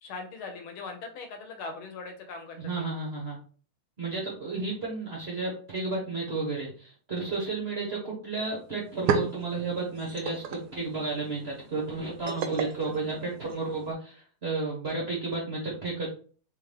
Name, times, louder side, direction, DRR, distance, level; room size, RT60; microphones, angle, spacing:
voice 1, 0.0-2.9, left 4 dB, 70° left, 5 dB, 1.7 m, -40 dB
voice 2, 2.6-3.4 4.0-16.1, right 3 dB, 40° right, -3 dB, 0.9 m, -32 dB
sound 1, 8.4-8.5 8.7-13.9, right 6 dB, 85° right, 0.9 m, -34 dB
3.8 x 3.6 x 3.3 m, 0.41 s
omnidirectional pair, 2.4 m